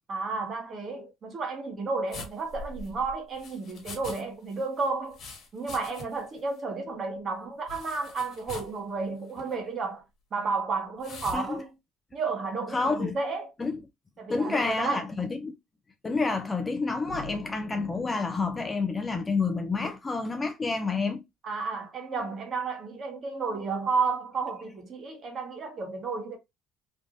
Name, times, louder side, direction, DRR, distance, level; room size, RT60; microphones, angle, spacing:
voice 1, 0.1-5.2 5.5-10.0 10.3-11.7 12.1-13.5 14.2-15.0 21.4-26.4, right 4 dB, 35° right, 1.2 m, -32 dB
sound 1, 2.1-4.2 4.5-6.3 6.6-6.7 7.7-8.8 9.3-9.5 11.0-11.4, left 2 dB, 45° left, 1.5 m, -43 dB
voice 2, 12.7-13.2 13.6-13.8 14.3-15.5 16.0-21.2, left 4 dB, 15° left, 0.4 m, -29 dB
sound 2, 17.0-19.9, left 3 dB, 70° left, 1.1 m, -45 dB
3.3 x 2.6 x 2.5 m
cardioid pair, 135°, 0 cm